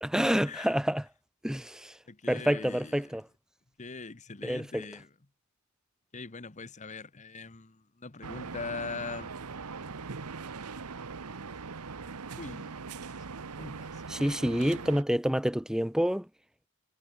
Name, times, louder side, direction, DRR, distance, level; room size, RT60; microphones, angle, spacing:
voice 1, 0.0-1.0 1.4-1.9 2.3-3.2 4.4-4.9 14.1-16.3, equal, 5° right, 0.8 m, -28 dB
voice 2, 2.1-3.1 3.8-5.1 6.1-9.3 12.4-13.1 13.6-14.8, left 4 dB, 35° left, 1.0 m, -42 dB
sound 1, 8.2-15.0, right 4 dB, 90° right, 1.0 m, -41 dB
head